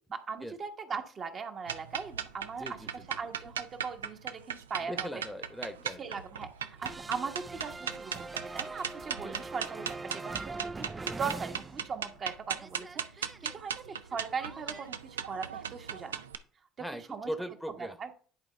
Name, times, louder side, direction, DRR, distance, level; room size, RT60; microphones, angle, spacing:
voice 1, 0.1-2.6 3.2-5.2 6.0-10.9 11.2-16.2 16.8-17.3 18.0-18.1, right 5 dB, 45° right, 5 dB, 1.2 m, -39 dB
sound 1, 1.7-16.3, right 8 dB, 90° right, 0.4 m, -38 dB
voice 2, 2.5-3.0 4.8-6.2 9.2-9.4 16.8-18.0, equal, ahead, 8 dB, 0.9 m, -40 dB
sound 2, 6.8-12.3 12.5-14.9, right 3 dB, 20° right, 0.4 m, -43 dB
10.5 x 4.4 x 3.3 m, 0.43 s
hypercardioid pair, 65°, 0 cm